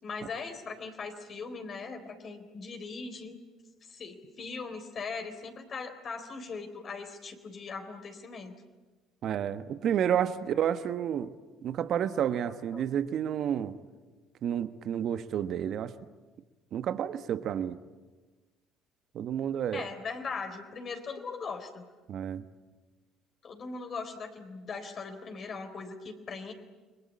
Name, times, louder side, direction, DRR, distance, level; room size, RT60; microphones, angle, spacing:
voice 1, 0.0-3.4 3.9-8.5 12.4-12.8 19.7-21.9 23.4-26.5, left 4 dB, 45° left, 5 dB, 4.0 m, -40 dB
voice 2, 9.2-11.3 11.6-13.8 14.4-15.9 16.7-17.8 19.1-19.8 22.1-22.4, right 9 dB, 55° right, 11 dB, 1.2 m, -30 dB
29.5 x 22.0 x 8.6 m, 1.3 s
hypercardioid pair, 60°, 0 cm